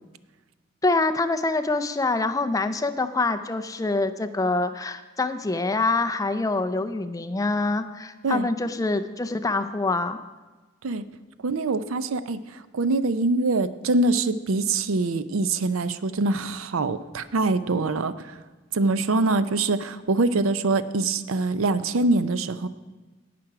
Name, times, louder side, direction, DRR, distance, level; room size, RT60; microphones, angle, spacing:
voice 1, 0.8-10.2, left 3 dB, 15° left, 10 dB, 0.4 m, -25 dB
voice 2, 11.4-18.4 18.7-22.7, right 3 dB, 90° right, 14 dB, 0.5 m, -24 dB
17.5 x 6.0 x 4.8 m, 1.3 s
head